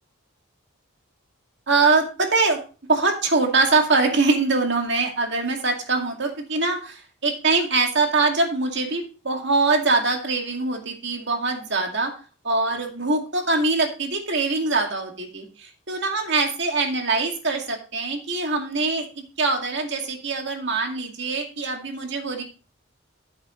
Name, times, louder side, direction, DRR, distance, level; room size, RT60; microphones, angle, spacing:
voice 1, 1.7-2.6 2.9-12.1 12.4-22.4, right 3 dB, 55° right, 3 dB, 2.2 m, -23 dB
13.0 x 7.2 x 3.1 m, 0.36 s
head